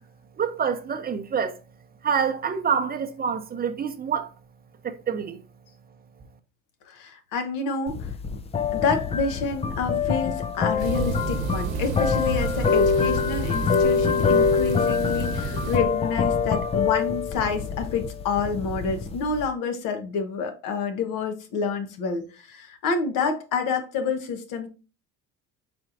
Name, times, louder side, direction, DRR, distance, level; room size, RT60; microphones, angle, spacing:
voice 1, 0.4-1.6 2.0-4.3 4.8-5.4, right 6 dB, 30° right, 0.6 m, -26 dB
voice 2, 6.9-8.1 8.7-24.7, left 5 dB, 75° left, 1.0 m, -28 dB
sound 1, 7.9-19.5, left 5 dB, 20° left, 0.3 m, -25 dB
sound 2, 10.8-15.8, right 4 dB, 70° right, 0.9 m, -31 dB
4.3 x 4.3 x 2.5 m
cardioid pair, 105°, 32 cm